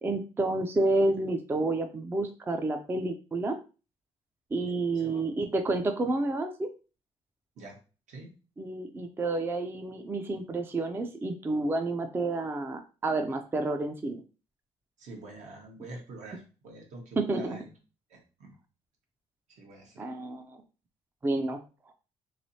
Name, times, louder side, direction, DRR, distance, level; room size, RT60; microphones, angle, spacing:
voice 1, 0.0-3.6 4.5-6.7 8.6-14.2 17.2-17.6 20.0-20.6 21.2-21.6, right 2 dB, 20° right, 6 dB, 0.4 m, -29 dB
voice 2, 4.9-5.3 7.6-7.8 8.1-8.3 15.0-17.7 18.1-18.6 19.5-20.1, right 2 dB, 75° right, 1 dB, 1.1 m, -46 dB
3.2 x 3.0 x 2.7 m, 0.33 s
cardioid pair, 125°, 12 cm